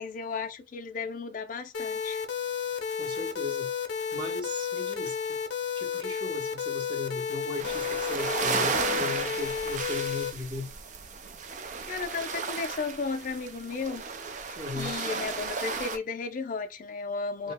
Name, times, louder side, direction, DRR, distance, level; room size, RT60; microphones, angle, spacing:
voice 1, 0.0-2.2 11.9-14.0 14.4-17.5, left 4 dB, 45° left, 0.4 m, -34 dB
sound 1, 1.7-10.3, left 7 dB, 90° left, 0.6 m, -32 dB
voice 2, 3.0-3.7 4.1-5.4 5.8-10.7 14.6-15.0 17.4-17.5, left 2 dB, 25° right, 0.8 m, -37 dB
sound 2, 7.6-16.0, right 4 dB, 45° right, 0.4 m, -34 dB
2.8 x 2.1 x 3.4 m
head